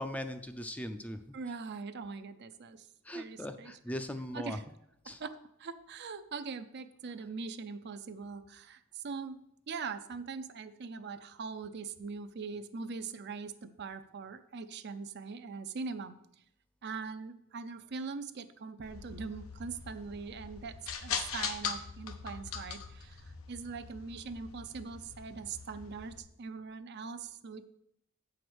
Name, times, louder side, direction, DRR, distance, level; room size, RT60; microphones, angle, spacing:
voice 1, 0.0-1.2 3.0-4.6 5.0-5.2, left 1 dB, 5° left, 8 dB, 0.5 m, -39 dB
voice 2, 1.3-2.9 3.1-3.7 4.3-4.6 5.1-9.4 9.7-16.1 16.8-27.6, right 5 dB, 55° right, 10 dB, 0.5 m, -42 dB
sound 1, 18.8-26.2, left 6 dB, 85° left, 0.8 m, -41 dB
7.9 x 4.9 x 6.1 m, 0.76 s
head